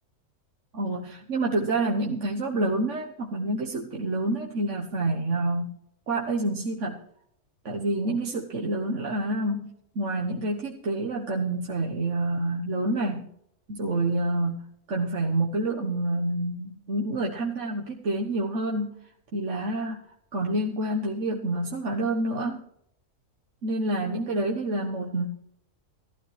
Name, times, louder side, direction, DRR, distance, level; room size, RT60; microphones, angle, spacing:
voice 1, 0.7-5.7 6.1-7.0 7.6-9.7 9.9-13.3 13.7-19.0 19.3-20.0 20.3-22.6 23.6-25.3, right 2 dB, 55° right, -1 dB, 1.5 m, -28 dB
15.5 x 14.5 x 3.3 m, 0.71 s
omnidirectional pair, 1.6 m